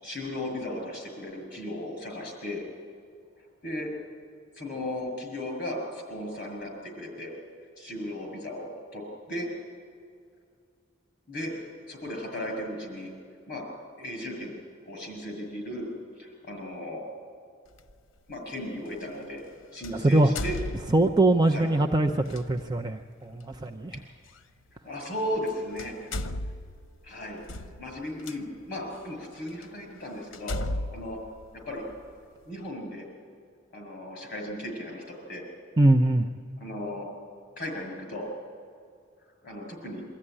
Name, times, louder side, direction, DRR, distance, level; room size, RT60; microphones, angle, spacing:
voice 1, 0.0-2.6 3.6-3.9 4.6-7.3 7.8-9.0 9.3-9.5 11.3-11.6 11.9-13.1 13.5-13.6 14.0-14.5 14.8-15.9 16.2-17.0 18.3-19.4 19.7-20.6 21.5-21.7 23.9-24.0 24.8-26.1 27.0-27.4 27.8-30.6 30.9-31.2 31.7-31.8 32.5-33.1 33.7-35.4 36.6-37.1 37.6-38.3 39.4-40.0, left 1 dB, 45° left, 2 dB, 6.1 m, -36 dB
sound 1, 17.7-17.9 19.8-21.3 22.2-22.4 24.3-24.4 25.3-25.5 25.8-28.4 29.0-29.1 29.6-29.7 30.3-32.1, left 1 dB, 70° left, 0.8 m, -35 dB
voice 2, 20.9-23.9 35.8-36.3, right 2 dB, 20° right, 4 dB, 0.6 m, -22 dB
23.5 x 14.0 x 9.9 m, 2.3 s
head